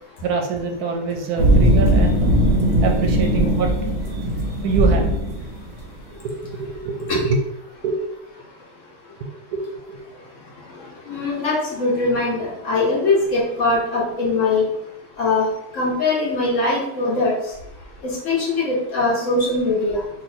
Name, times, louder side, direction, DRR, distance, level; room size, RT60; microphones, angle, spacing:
voice 1, 0.2-2.3 2.8-3.7 4.6-5.2 6.2-7.4 7.8-8.0 9.2-10.0, right 4 dB, 75° right, 3 dB, 1.0 m, -25 dB
sound 1, 1.4-5.8, right 1 dB, 50° right, 0.9 m, -18 dB
voice 2, 11.1-14.7 15.2-15.4 15.7-17.3 18.0-20.0, left 3 dB, 55° left, -4 dB, 1.2 m, -21 dB
3.0 x 2.6 x 4.2 m, 0.80 s
omnidirectional pair, 1.8 m